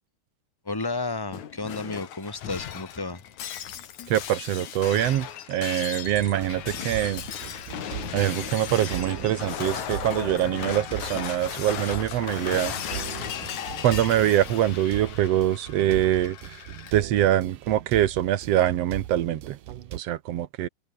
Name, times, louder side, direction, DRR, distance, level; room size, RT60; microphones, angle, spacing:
voice 1, 0.7-3.2, left 3 dB, 5° left, 3.4 m, -32 dB
Shatter, 1.3-16.9, left 9 dB, 65° left, 3.1 m, -36 dB
voice 2, 4.1-7.2 8.1-12.7 13.8-16.4 16.9-19.6 19.9-20.7, right 12 dB, 65° right, 1.8 m, -24 dB
sound 1, 6.1-20.0, right 12 dB, 85° right, 3.0 m, -39 dB
omnidirectional pair, 3.8 m